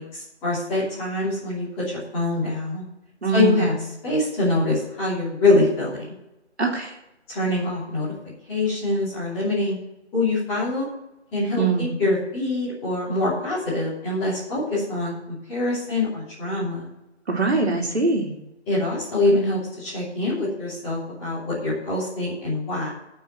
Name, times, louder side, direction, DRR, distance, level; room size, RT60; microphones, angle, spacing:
voice 1, 0.0-2.8 3.3-3.7 4.0-6.0 7.3-8.1 8.5-9.8 10.1-10.9 11.3-16.9 18.7-22.9, left 2 dB, 10° left, -10 dB, 3.0 m, -24 dB
voice 2, 3.2-3.8 6.6-6.9 11.6-12.0 17.3-18.3, right 4 dB, 65° right, 1 dB, 2.7 m, -23 dB
10.5 x 5.7 x 8.0 m, 0.90 s
figure-of-eight pair, 170°, 35 cm